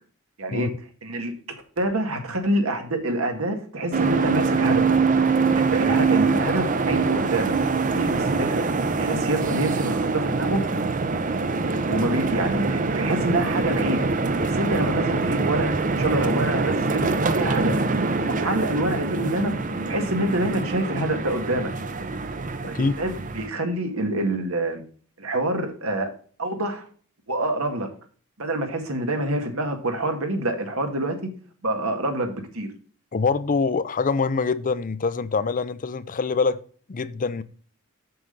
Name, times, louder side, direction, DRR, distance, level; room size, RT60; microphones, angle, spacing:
voice 1, 0.4-0.7 1.0-1.3 1.8-5.0 5.5-7.5 7.9-8.6 9.0-10.6 11.9-14.1 14.4-17.9 18.3-19.6 19.9-21.7 22.7-24.8 25.2-26.1 26.4-26.9 27.3-27.9 28.4-31.3 31.6-32.7, right 1 dB, 80° right, 1.9 m, -26 dB
sound 1, 3.9-23.5, right 4 dB, 40° right, 0.7 m, -24 dB
voice 2, 33.1-36.6 36.9-37.4, left 4 dB, 40° left, 0.5 m, -24 dB
7.8 x 7.1 x 3.9 m
head